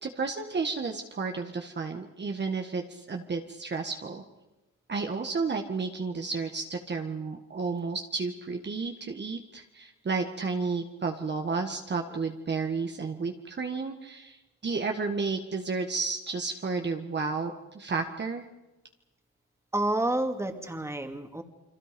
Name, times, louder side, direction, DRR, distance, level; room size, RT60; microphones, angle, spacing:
voice 1, 0.0-4.2 4.9-18.5, right 4 dB, 35° right, 3 dB, 1.8 m, -32 dB
voice 2, 19.7-21.4, right 1 dB, 10° right, 5 dB, 2.6 m, -29 dB
29.0 x 23.5 x 5.4 m, 1.1 s
cardioid pair, 90°, 30 cm